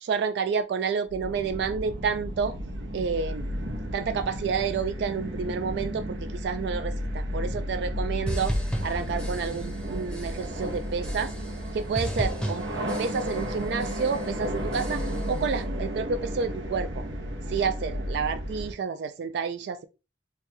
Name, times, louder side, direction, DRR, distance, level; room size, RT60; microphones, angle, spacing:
voice 1, 0.0-2.6 2.9-3.5 3.9-8.5 8.8-11.3 11.7-12.7 13.0-17.0 17.5-19.9, right 5 dB, 65° right, 0.3 m, -29 dB
sound 1, 1.1-18.7, equal, 90° right, 0.9 m, -33 dB
sound 2, 8.3-9.8 10.1-10.6 11.0-11.7 11.9-13.5 13.8-14.3 14.7-15.4, equal, 5° left, 0.7 m, -35 dB
3.1 x 2.2 x 4.1 m
head